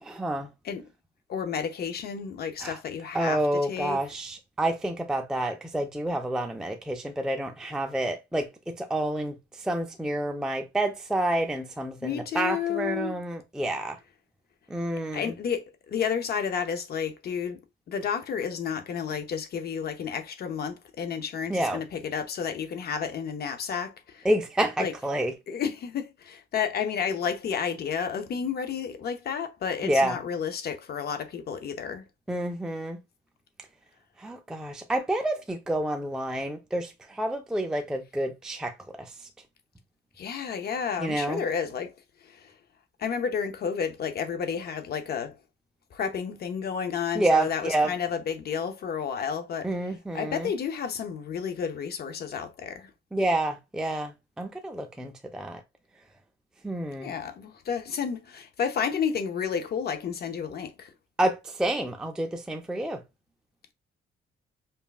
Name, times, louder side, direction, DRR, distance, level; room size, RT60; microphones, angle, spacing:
voice 1, 0.0-0.5 2.6-2.8 3.1-14.0 14.7-15.3 21.5-21.8 24.2-25.3 29.8-30.2 32.3-33.0 34.2-39.3 41.0-41.4 47.1-47.9 49.6-50.5 53.1-55.6 56.6-57.1 61.2-63.0, right 1 dB, 5° right, 0.4 m, -29 dB
voice 2, 1.3-3.4 3.7-4.0 12.0-13.2 15.1-17.6 17.9-24.3 24.8-24.9 25.5-32.0 40.2-41.9 42.2-42.5 43.0-45.4 45.9-49.7 50.1-52.9 57.0-60.9, left 7 dB, 50° left, 0.6 m, -31 dB
5.3 x 2.3 x 2.3 m
cardioid pair, 145°, 21 cm